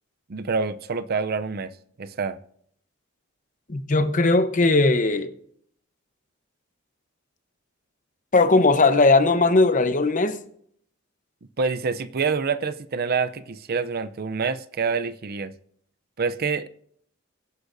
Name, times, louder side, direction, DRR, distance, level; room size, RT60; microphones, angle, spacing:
voice 1, 0.3-1.7 2.0-2.4 11.6-15.5 16.2-16.7, right 5 dB, 50° right, 0.6 m, -26 dB
voice 2, 3.7-5.3 8.3-10.4, left 3 dB, 40° left, 0.9 m, -18 dB
23.0 x 9.8 x 2.7 m
head